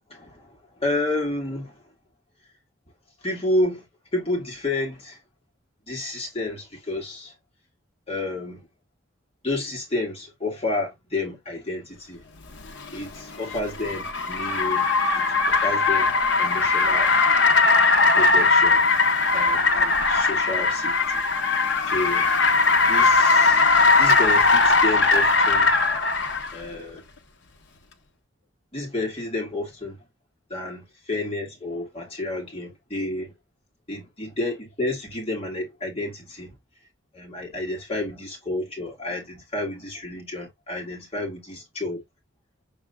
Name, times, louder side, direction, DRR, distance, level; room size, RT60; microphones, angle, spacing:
voice 1, 0.1-1.7 3.2-3.8 4.1-5.2 5.9-7.3 8.1-8.7 9.4-12.2 12.9-14.9 15.2-16.1 16.4-17.1 18.2-18.9 19.3-21.3 21.9-22.3 22.9-23.6 24.0-25.7 26.5-27.0 28.7-30.0 30.5-33.3 33.9-36.5 37.1-42.0, left 2 dB, 30° left, 2.0 m, -30 dB
Car, 12.6-26.5, left 3 dB, 65° left, 1.0 m, -19 dB
6.6 x 3.4 x 2.3 m
head